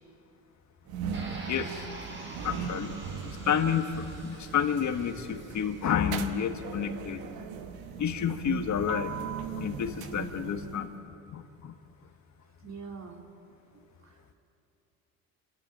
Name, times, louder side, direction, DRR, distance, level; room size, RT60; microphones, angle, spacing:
sound 1, 0.9-11.0, right 7 dB, 80° right, 1.3 m, -39 dB
sound 2, 1.1-6.1, right 2 dB, 30° right, 7.7 m, -46 dB
voice 1, 1.5-1.9 2.4-2.9 3.2-7.3 8.0-9.2 9.5-10.9 11.3-11.7, left 8 dB, 55° left, 7 dB, 1.6 m, -30 dB
voice 2, 12.6-13.2 13.7-14.3, right 5 dB, 50° right, 1 dB, 3.6 m, -45 dB
28.5 x 12.5 x 9.1 m, 2.7 s
cardioid pair, 90°, 35 cm